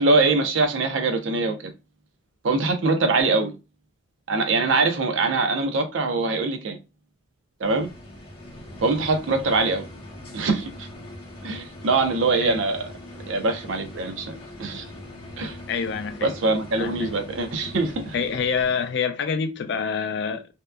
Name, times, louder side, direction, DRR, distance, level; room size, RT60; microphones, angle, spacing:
voice 1, 0.0-1.6 2.4-3.5 4.3-6.8 7.6-7.9 8.8-9.8 10.3-10.7 11.4-12.9 13.3-14.8 15.4-15.6 16.2-18.1, right 3 dB, 80° right, 0.5 m, -23 dB
sound 1, 7.6-18.9, left 1 dB, 30° left, 0.8 m, -41 dB
voice 2, 15.7-16.3 16.8-17.1 18.1-20.5, left 6 dB, 60° left, 0.4 m, -26 dB
2.8 x 2.1 x 2.2 m
head